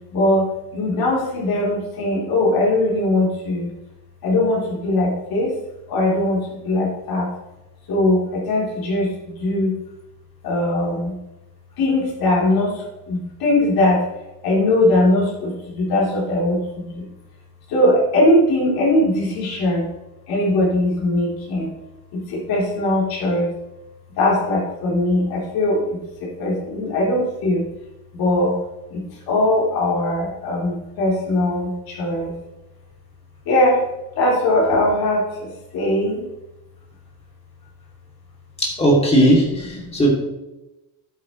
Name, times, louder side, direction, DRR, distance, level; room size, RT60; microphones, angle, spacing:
voice 1, 0.1-3.7 4.2-5.5 5.9-7.3 7.9-9.8 10.4-11.1 11.8-14.0 14.4-17.0 17.7-19.9 20.3-21.7 22.1-23.5 24.2-27.7 28.1-28.6 28.9-32.3 33.5-33.9 34.2-36.2 39.8-40.0, left 1 dB, 55° left, -5 dB, 3.6 m, -20 dB
voice 2, 38.6-40.1, right 1 dB, 15° left, -3 dB, 2.7 m, -17 dB
10.5 x 8.9 x 3.2 m, 0.97 s
cardioid pair, 170°, 44 cm